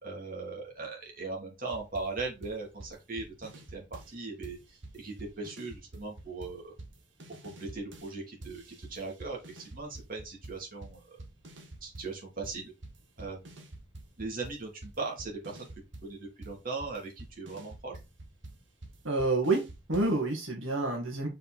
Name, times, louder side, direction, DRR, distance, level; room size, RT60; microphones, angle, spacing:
voice 1, 0.0-6.7 7.4-11.2 11.8-12.7 13.2-13.6 14.2-15.7 16.0-18.0, right 3 dB, 45° right, -1 dB, 3.1 m, -39 dB
sound 1, 1.7-4.2 4.4-8.1 8.4-12.2 12.4-20.2, right 2 dB, 65° right, 1.8 m, -48 dB
voice 2, 19.0-19.6 19.9-21.3, right 2 dB, 85° right, 0 dB, 2.3 m, -28 dB
5.5 x 5.2 x 4.4 m, 0.25 s
head